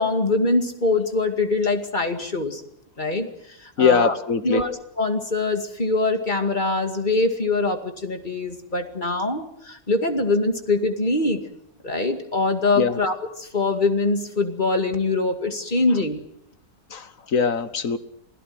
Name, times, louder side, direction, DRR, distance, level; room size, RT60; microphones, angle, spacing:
voice 1, 0.0-2.6 3.0-4.1 4.4-11.4 11.8-16.2, left 3 dB, 30° left, 7 dB, 2.4 m, -23 dB
voice 2, 3.8-4.6 12.8-13.0 16.9-18.0, left 6 dB, 60° left, 13 dB, 1.6 m, -21 dB
27.5 x 17.5 x 7.9 m, 0.71 s
omnidirectional pair, 1.6 m